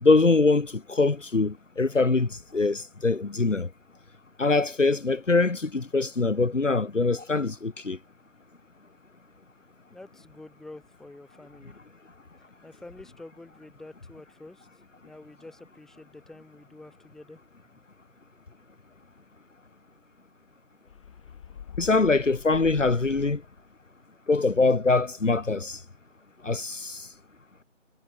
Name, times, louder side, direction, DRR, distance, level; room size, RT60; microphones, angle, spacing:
voice 1, 0.0-3.7 4.4-8.0 21.8-23.4 24.3-25.8 26.4-27.1, left 3 dB, 70° left, 2.4 m, -23 dB
voice 2, 9.9-11.8 12.6-14.7 15.0-17.4 17.7-17.8, left 2 dB, ahead, 7.4 m, -47 dB
sound 1, 20.9-23.7, left 8 dB, 25° left, 7.0 m, -44 dB
figure-of-eight pair, 165°, 39 cm